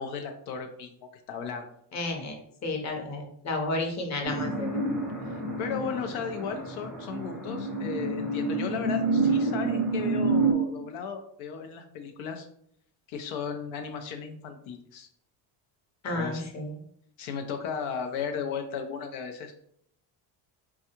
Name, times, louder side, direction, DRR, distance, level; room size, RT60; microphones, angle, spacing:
voice 1, 0.0-1.7 5.2-12.5 13.1-15.1 16.1-16.4 17.2-19.5, left 6 dB, 85° left, 6 dB, 0.6 m, -35 dB
voice 2, 1.9-2.3 2.6-4.8 16.0-16.7, left 2 dB, 35° left, 2 dB, 0.8 m, -32 dB
sound 1, 4.2-10.5, right 3 dB, ahead, 0.5 m, -28 dB
3.5 x 2.3 x 2.8 m, 0.68 s
cardioid pair, 105°, 48 cm